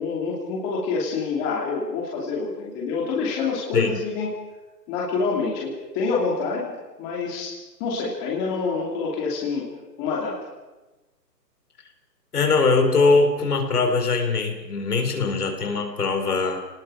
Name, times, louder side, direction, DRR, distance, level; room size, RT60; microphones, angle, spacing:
voice 1, 0.0-4.3 4.9-9.7 10.0-10.3, left 4 dB, 15° left, -3 dB, 2.9 m, -27 dB
voice 2, 12.3-16.6, left 3 dB, 65° left, 5 dB, 4.1 m, -21 dB
29.5 x 19.0 x 5.0 m, 1.1 s
hypercardioid pair, 170°, 50 cm